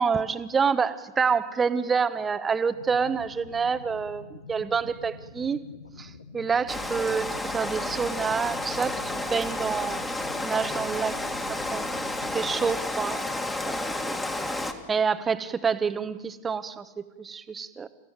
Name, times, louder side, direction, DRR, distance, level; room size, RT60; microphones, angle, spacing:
voice 1, 0.0-5.6 6.0-10.0 10.4-11.2 11.5-13.2 13.6-13.8 14.1-14.2 14.9-17.9, right 6 dB, 15° right, 12 dB, 1.1 m, -27 dB
sound 1, 2.7-12.7, left 4 dB, 75° left, 1.6 m, -46 dB
Rain, 6.7-14.7, left 2 dB, 10° left, 2.1 m, -31 dB
28.5 x 15.5 x 9.3 m, 1.2 s
figure-of-eight pair, 90°, 0 cm